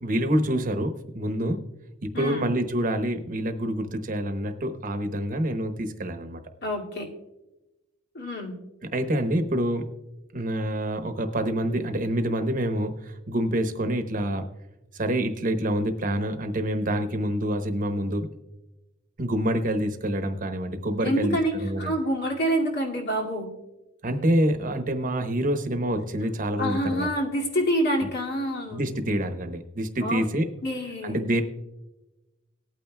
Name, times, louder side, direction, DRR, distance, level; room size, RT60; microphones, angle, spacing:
voice 1, 0.0-1.7 2.0-6.4 8.9-10.0 10.3-14.5 14.9-18.3 19.2-21.9 24.0-27.1 28.7-30.5 31.0-31.4, right 1 dB, 45° right, 7 dB, 0.9 m, -27 dB
voice 2, 2.1-2.5 6.6-7.1 8.1-8.5 21.0-23.5 26.6-28.8 30.0-30.2 30.6-31.2, equal, 55° left, 0 dB, 2.2 m, -27 dB
19.0 x 8.9 x 2.2 m, 1.0 s
head